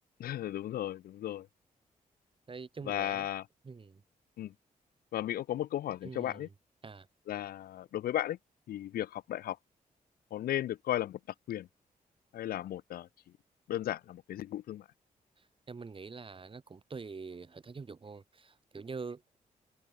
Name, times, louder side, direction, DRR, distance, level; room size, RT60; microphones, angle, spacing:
voice 1, 0.2-1.5 2.8-3.5 4.4-4.5 5.1-6.5 7.3-8.4 8.7-9.6 10.3-11.2 11.5-11.7 12.3-13.1 13.7-14.8, left 12 dB, 80° left, 0.5 m, -35 dB
voice 2, 2.5-3.3 3.6-4.0 6.0-6.4 6.8-7.1 15.7-19.2, right 4 dB, 35° right, 1.3 m, -44 dB
open air
cardioid pair, 70°, 15 cm